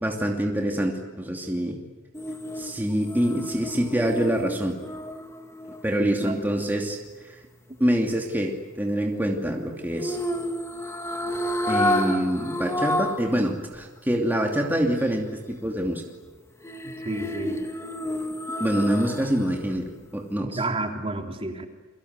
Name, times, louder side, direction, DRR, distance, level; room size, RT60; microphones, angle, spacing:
voice 1, 0.0-1.8 2.6-4.7 5.8-7.0 7.2-7.3 7.8-10.2 11.7-16.0 18.6-19.8 20.1-20.6, equal, 10° right, 1 dB, 2.7 m, -25 dB
sound 1, 2.1-6.4 10.0-13.3 13.7-13.8 16.6-19.5 19.9-20.0, left 1 dB, 15° left, 2.3 m, -30 dB
voice 2, 6.0-6.4 16.8-17.6 20.4-21.7, right 2 dB, 30° right, 3 dB, 3.2 m, -30 dB
29.5 x 24.0 x 8.0 m, 1.3 s
head